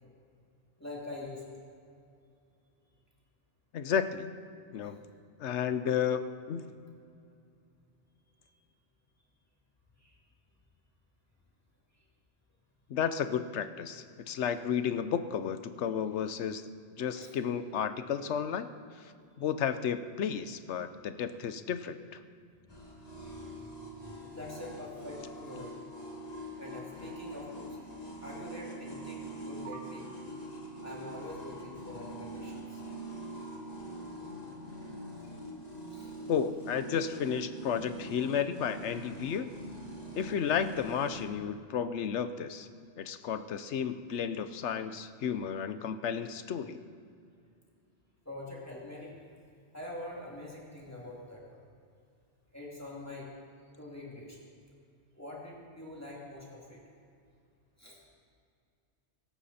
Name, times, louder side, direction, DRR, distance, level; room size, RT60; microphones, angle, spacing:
voice 1, 0.8-1.6 4.7-4.9 8.4-8.5 10.0-10.2 17.1-17.3 21.1-21.2 22.5-25.8 26.6-27.8 28.2-30.1 30.8-32.9 35.2-35.3 35.9-36.2 48.2-49.2 49.7-51.6 52.5-53.3 53.8-54.4 55.1-56.8 57.8-58.0, left 1 dB, 15° left, -4 dB, 2.8 m, -45 dB
voice 2, 3.7-4.3 4.7-5.0 5.4-6.7 12.9-16.6 17.0-18.7 19.4-22.0 36.3-39.5 40.1-42.7 43.0-46.8, left 7 dB, 80° left, 11 dB, 1.1 m, -32 dB
sound 1, 22.7-41.2, right 1 dB, 35° left, 2.6 m, -44 dB
24.0 x 13.0 x 4.2 m, 2.4 s
omnidirectional pair, 1.2 m